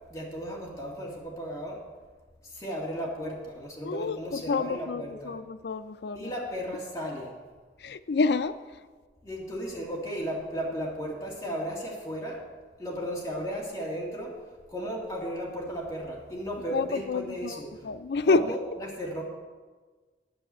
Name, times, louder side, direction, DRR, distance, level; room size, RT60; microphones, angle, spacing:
voice 1, 0.1-1.8 2.6-5.4 6.1-7.3 9.2-12.4 12.8-14.3 14.7-17.7 18.3-19.2, equal, 20° left, -3 dB, 2.2 m, -35 dB
voice 2, 3.8-6.3 7.8-8.6 16.7-17.6 17.8-18.5, left 4 dB, 65° left, 13 dB, 0.4 m, -28 dB
10.5 x 7.2 x 7.5 m, 1.4 s
head